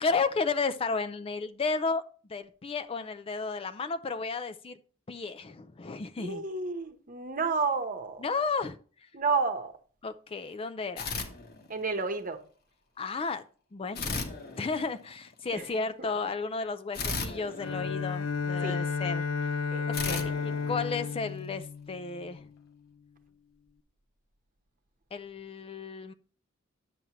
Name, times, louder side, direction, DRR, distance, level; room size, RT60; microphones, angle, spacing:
voice 1, 0.0-2.0 2.3-4.8 5.1-6.4 8.2-8.8 10.0-11.2 13.0-13.4 13.7-19.5 19.9-22.5 25.1-26.1, left 4 dB, 25° left, 0.4 m, -33 dB
voice 2, 6.2-8.3 9.1-9.7 11.7-12.4 15.5-15.9 18.6-18.8 19.7-20.2, right 4 dB, 40° right, 1.0 m, -31 dB
sound 1, 11.0-12.1 13.9-15.3 16.9-18.6 19.9-21.5, left 4 dB, 50° left, 1.2 m, -37 dB
Bowed string instrument, 17.6-22.7, left 5 dB, 80° left, 0.5 m, -32 dB
9.2 x 7.2 x 3.0 m
head